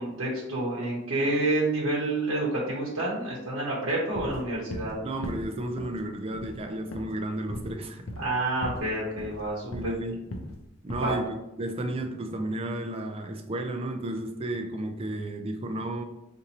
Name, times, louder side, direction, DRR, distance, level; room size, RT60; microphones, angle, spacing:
voice 1, 0.0-5.0 8.2-9.9 11.0-11.2, right 2 dB, 80° right, -5 dB, 0.9 m, -28 dB
sound 1, 4.2-5.0 5.2-6.0 6.3-6.6 6.9-7.1 7.5-7.8 8.1-8.4 8.6-8.9 9.2-10.0 10.3-10.6 10.9-11.2, left 1 dB, 75° left, 0.6 m, -37 dB
voice 2, 5.0-8.1 9.7-10.2 10.8-16.0, right 1 dB, 25° right, 5 dB, 0.3 m, -33 dB
4.0 x 2.6 x 2.9 m, 0.92 s
head